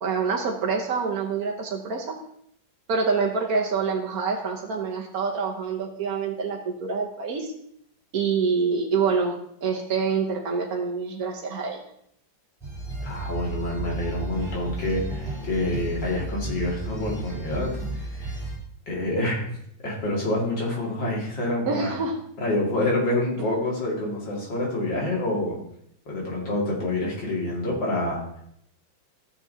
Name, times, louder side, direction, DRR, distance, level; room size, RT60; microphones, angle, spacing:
voice 1, 0.0-2.2 2.9-7.5 8.1-11.8 21.7-22.1 23.4-23.5, right 5 dB, 55° right, 0 dB, 1.3 m, -26 dB
sound 1, 12.6-18.6, right 2 dB, ahead, 3.1 m, -33 dB
voice 2, 13.0-18.4 18.9-19.5 19.8-21.9 22.4-25.6 26.1-28.2, left 1 dB, 70° left, -3 dB, 3.0 m, -27 dB
14.5 x 6.9 x 2.8 m, 0.71 s
omnidirectional pair, 2.1 m